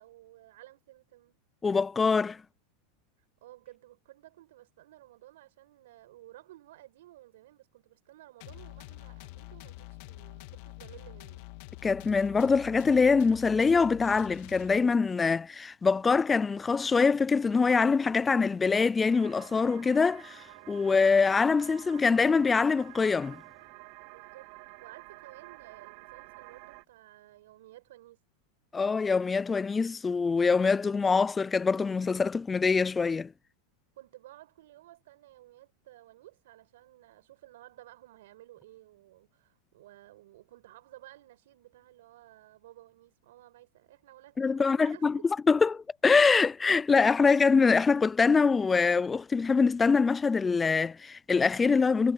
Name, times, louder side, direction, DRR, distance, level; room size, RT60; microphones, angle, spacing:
voice 1, 0.0-1.4 3.4-11.5 24.0-24.5 24.8-28.2 34.0-45.1, right 15 dB, 75° right, 5.5 m, -54 dB
voice 2, 1.6-2.4 11.8-23.4 28.7-33.3 44.4-45.2 45.5-52.1, left 5 dB, 15° left, 0.3 m, -24 dB
sound 1, 8.4-15.1, left 21 dB, 60° left, 3.0 m, -46 dB
sound 2, 19.1-26.8, right 24 dB, 60° right, 1.0 m, -50 dB
hypercardioid pair, 115°, 0 cm